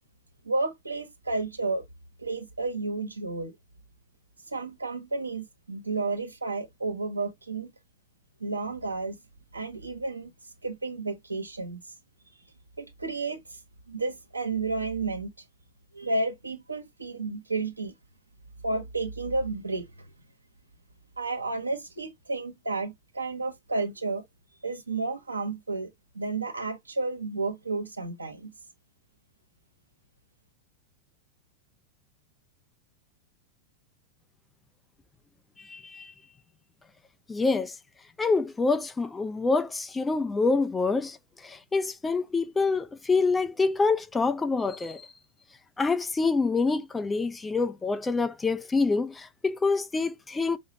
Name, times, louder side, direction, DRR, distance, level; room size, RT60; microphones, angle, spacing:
voice 1, 0.4-1.8 2.2-3.5 4.5-7.7 8.4-9.1 9.5-10.3 10.6-11.8 12.8-13.4 13.9-15.3 15.9-17.9 18.6-19.9 21.2-24.2 24.6-25.9 26.1-28.5, right 3 dB, 80° right, 1.2 m, -31 dB
voice 2, 35.7-36.1 37.3-37.7 38.2-41.2 41.4-45.1 45.8-50.6, left 4 dB, 10° left, 0.4 m, -26 dB
5.8 x 2.6 x 2.9 m
figure-of-eight pair, 90°, 0 cm